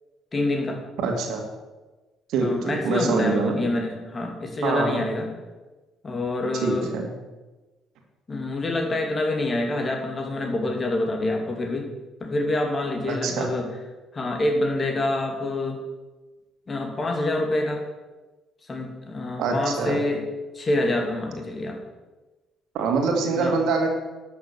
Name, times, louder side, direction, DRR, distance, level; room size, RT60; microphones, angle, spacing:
voice 1, 0.3-0.8 2.4-5.3 6.0-6.9 8.3-11.9 12.2-13.7 14.1-15.8 16.7-17.8 18.6-20.2 20.5-21.8 23.3-23.6, left 2 dB, 35° left, 3 dB, 2.6 m, -26 dB
voice 2, 1.0-1.4 2.3-3.7 4.6-5.1 6.6-7.1 13.1-13.5 19.4-20.0 22.7-24.0, right 4 dB, 65° right, 2 dB, 2.2 m, -25 dB
12.5 x 6.6 x 6.9 m, 1.2 s
hypercardioid pair, 50°, 0 cm